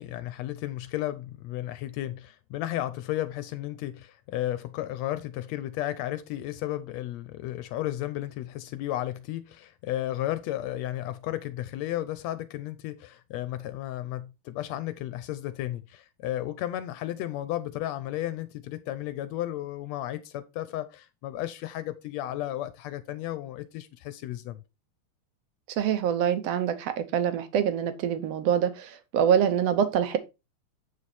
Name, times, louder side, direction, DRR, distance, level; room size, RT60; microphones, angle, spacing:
voice 1, 0.0-24.6, left 13 dB, 80° left, 1.6 m, -33 dB
voice 2, 25.8-30.2, right 9 dB, 70° right, 1.7 m, -25 dB
8.0 x 5.1 x 4.1 m
omnidirectional pair, 3.4 m